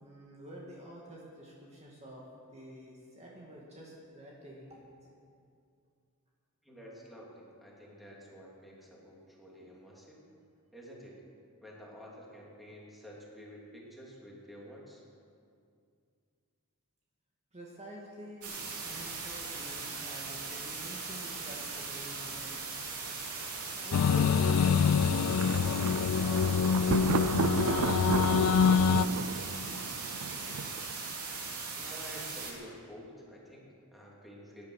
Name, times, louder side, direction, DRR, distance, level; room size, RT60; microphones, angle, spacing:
voice 1, 0.0-2.2 2.5-5.0 17.5-22.7 23.7-25.8 26.1-29.4, equal, 30° right, -4 dB, 2.0 m, -48 dB
voice 2, 6.6-10.2 10.7-11.2 11.6-15.0 31.7-34.7, equal, ahead, -4 dB, 3.0 m, -50 dB
sound 1, 18.4-32.5, right 4 dB, 80° right, 2.9 m, -39 dB
sound 2, 23.9-29.1, left 6 dB, 75° left, 0.4 m, -25 dB
Thunder, 25.3-31.1, right 6 dB, 65° right, 0.5 m, -34 dB
18.0 x 10.5 x 6.5 m, 2.4 s
head